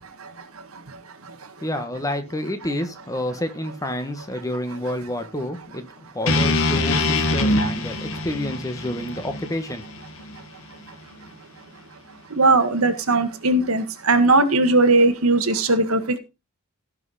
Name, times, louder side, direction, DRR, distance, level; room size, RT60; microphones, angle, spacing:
voice 1, 1.6-5.9 6.1-9.8, left 1 dB, 15° left, 1.5 m, -29 dB
sound 1, 6.3-10.4, left 2 dB, 75° left, 1.9 m, -23 dB
voice 2, 12.3-16.2, right 2 dB, 85° right, 1.7 m, -19 dB
16.5 x 5.8 x 4.2 m
head